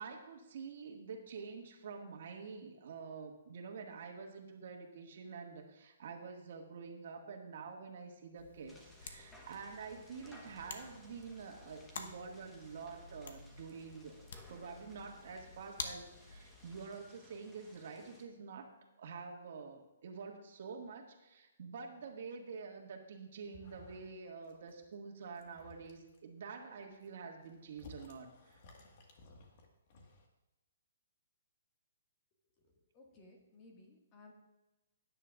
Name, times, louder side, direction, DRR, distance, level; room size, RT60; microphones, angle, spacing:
voice 1, 0.0-14.2 14.5-18.7 19.0-28.6, right 5 dB, 55° right, 2 dB, 1.8 m, -48 dB
sound 1, 8.4-16.8, left 4 dB, 65° left, 1.1 m, -50 dB
sound 2, 8.7-18.2, equal, 5° left, 1.2 m, -61 dB
sound 3, 23.4-24.2 24.4-24.9 25.2-26.2 26.8-30.3, left 3 dB, 40° left, 1.6 m, -58 dB
voice 2, 32.6-34.3, left 2 dB, 25° left, 1 dB, 1.8 m, -60 dB
17.5 x 9.9 x 2.5 m, 1.0 s
hypercardioid pair, 165°, 0 cm